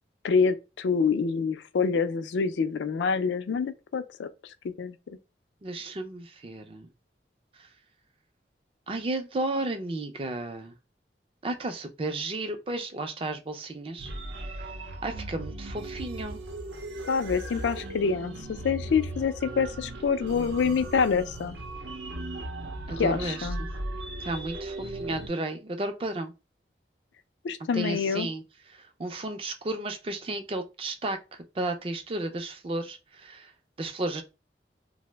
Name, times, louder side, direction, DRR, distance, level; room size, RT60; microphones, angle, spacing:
voice 1, 0.2-5.2 17.1-21.6 23.0-23.6 27.4-28.3, left 5 dB, 90° left, 0.4 m, -27 dB
voice 2, 5.6-6.9 7.6-7.7 8.9-10.7 11.4-14.1 15.0-16.4 22.9-23.7 24.2-26.3 27.7-28.4 28.7-31.2 31.5-33.5 33.8-34.2, right 2 dB, 30° right, 0.4 m, -33 dB
sound 1, 14.0-25.3, right 1 dB, 85° right, 0.6 m, -37 dB
2.8 x 2.0 x 3.2 m
head